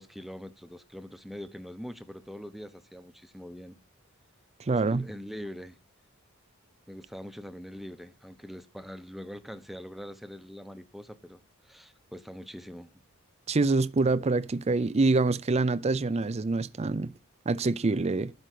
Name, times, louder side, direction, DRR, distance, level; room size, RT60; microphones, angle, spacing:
voice 1, 0.0-3.8 4.7-5.8 6.9-13.0, equal, ahead, 0.8 m, -43 dB
voice 2, 4.6-5.1 13.5-17.1 17.5-18.3, right 3 dB, 30° right, 0.5 m, -26 dB
12.0 x 5.1 x 8.2 m
head